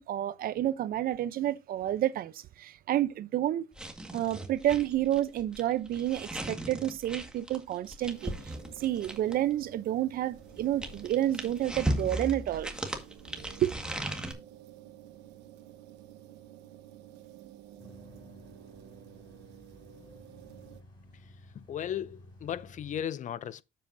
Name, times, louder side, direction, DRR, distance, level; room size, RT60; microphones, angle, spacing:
voice 1, 0.0-3.7 4.1-12.7 13.6-13.7, right 12 dB, 60° right, 0.7 m, -30 dB
sound 1, 3.7-9.5 10.4-14.3, right 1 dB, 5° right, 1.8 m, -37 dB
sound 2, 8.1-20.8, right 11 dB, 90° right, 1.2 m, -51 dB
sound 3, 17.8-23.0, left 1 dB, 25° left, 5.7 m, -54 dB
voice 2, 21.5-23.6, left 10 dB, 50° left, 0.6 m, -36 dB
9.8 x 7.8 x 2.7 m
cardioid pair, 110°, 17 cm